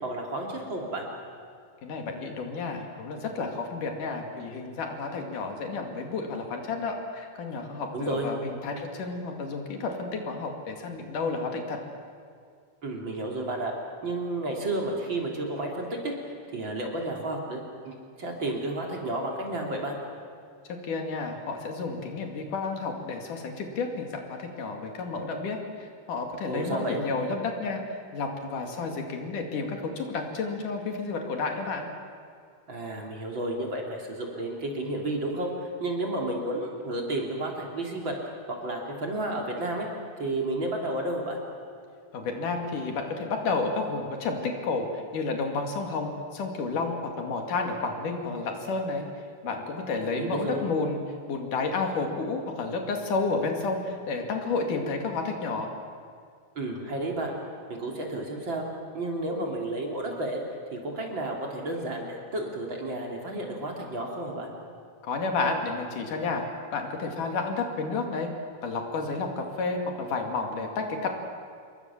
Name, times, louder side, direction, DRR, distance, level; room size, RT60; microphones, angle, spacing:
voice 1, 0.0-1.1 7.9-8.3 12.8-13.7 14.0-17.6 17.9-20.0 26.5-27.0 32.7-38.3 38.6-39.9 40.2-41.4 50.0-50.6 56.6-57.3 57.7-58.6 58.9-60.4 60.7-64.5, right 1 dB, 35° right, 0 dB, 3.9 m, -32 dB
voice 2, 1.8-11.8 20.8-31.9 42.1-49.0 49.4-51.0 51.3-55.7 65.0-66.4 66.7-68.3 68.6-71.1, left 3 dB, 80° left, 3 dB, 3.9 m, -31 dB
27.0 x 22.0 x 7.3 m, 2.2 s
omnidirectional pair, 3.6 m